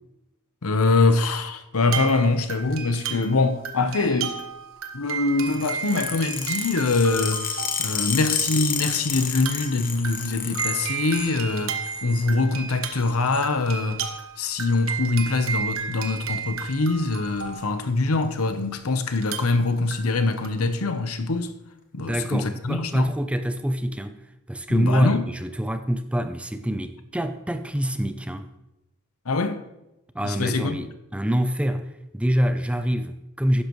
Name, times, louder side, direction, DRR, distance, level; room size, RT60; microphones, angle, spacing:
voice 1, 0.6-4.4 4.9-7.5 7.8-14.0 14.4-21.5 21.9-23.1 24.7-25.2 29.2-29.6 30.2-30.8, left 3 dB, 80° left, 0.9 m, -24 dB
sound 1, 1.8-8.2 8.7-8.8 9.3-18.4 19.1-20.5, right 7 dB, 65° right, 1.1 m, -34 dB
sound 2, 5.4-11.3 11.7-12.3 13.0-13.5 14.6-14.8 15.8-16.0 16.3-16.4 16.7-16.8 17.1-17.6 18.2-18.3 19.2-19.3, left 7 dB, 40° left, 1.1 m, -31 dB
voice 2, 22.0-24.2 24.5-28.5 30.1-33.6, equal, 5° right, 0.4 m, -26 dB
12.0 x 10.0 x 3.1 m
head